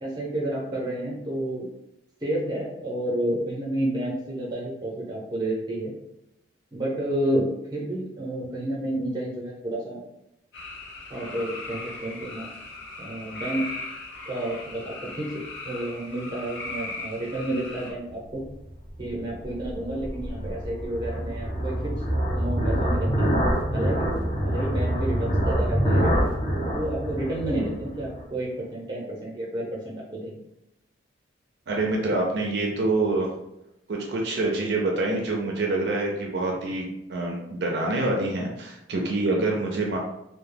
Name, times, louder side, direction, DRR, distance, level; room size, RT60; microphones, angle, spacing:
voice 1, 0.0-1.7 2.2-5.9 6.7-10.0 11.1-12.5 13.0-13.6 14.3-15.3 15.6-18.4 19.0-21.9 22.3-23.3 23.7-26.3 26.6-30.4, right 1 dB, 25° right, -3 dB, 0.7 m, -30 dB
sound 1, 10.5-17.9, left 2 dB, 75° left, 0.7 m, -38 dB
sound 2, 18.7-28.2, equal, 25° left, 0.6 m, -26 dB
voice 2, 31.7-33.3 33.9-40.0, right 2 dB, 60° right, -1 dB, 0.4 m, -26 dB
2.2 x 2.1 x 3.2 m, 0.87 s
head